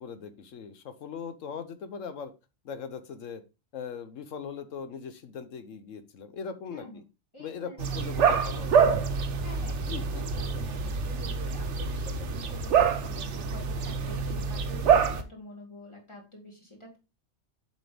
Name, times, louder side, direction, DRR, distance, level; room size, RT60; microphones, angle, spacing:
voice 1, 0.0-2.3 2.6-3.4 3.7-7.0 7.4-8.7 9.8-10.3, left 6 dB, 85° left, 11 dB, 1.2 m, -40 dB
voice 2, 6.7-7.0 7.3-8.0 9.4-17.0, equal, 25° left, 0 dB, 2.3 m, -47 dB
sound 1, 7.8-15.2, right 6 dB, 70° right, 1.1 m, -26 dB
7.4 x 5.1 x 3.4 m, 0.27 s
omnidirectional pair, 1.3 m